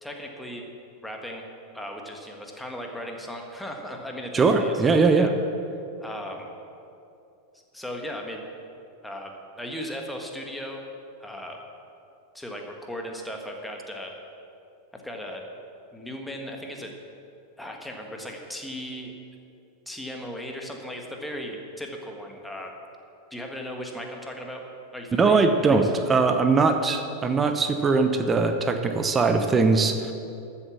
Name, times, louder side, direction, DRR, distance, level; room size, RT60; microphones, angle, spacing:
voice 1, 0.0-0.6 1.0-1.5 1.7-4.8 5.2-5.3 6.0-6.5 7.7-8.4 9.0-10.8 11.2-11.6 12.3-14.1 14.9-15.4 15.9-16.9 17.6-19.1 19.8-22.7 23.3-24.6 24.9-25.9, equal, 5° left, 1 dB, 1.7 m, -37 dB
voice 2, 4.3-5.3 25.1-30.1, right 4 dB, 20° right, 7 dB, 0.9 m, -21 dB
13.5 x 7.2 x 7.3 m, 2.6 s
figure-of-eight pair, 90°, 0 cm